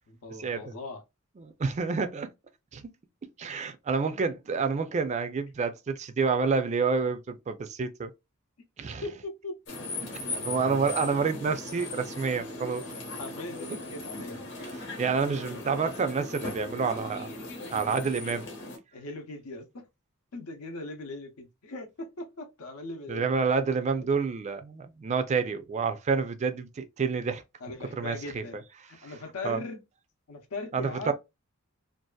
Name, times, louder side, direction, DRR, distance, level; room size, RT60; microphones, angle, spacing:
voice 1, 0.1-1.0 9.0-9.6 10.2-10.4 12.9-14.4 18.9-19.9 20.3-23.5 27.6-28.6 28.9-29.8 30.3-31.1, left 2 dB, 85° left, 0.7 m, -40 dB
voice 2, 1.4-2.3 2.7-2.9 3.4-8.1 8.8-9.0 10.4-12.8 15.0-17.3 17.7-18.5 23.1-27.4 28.0-28.4 29.4-29.6 30.7-31.1, right 5 dB, 30° right, 0.4 m, -28 dB
sound 1, 9.7-18.8, left 2 dB, 55° left, 0.9 m, -38 dB
2.6 x 2.4 x 2.2 m
head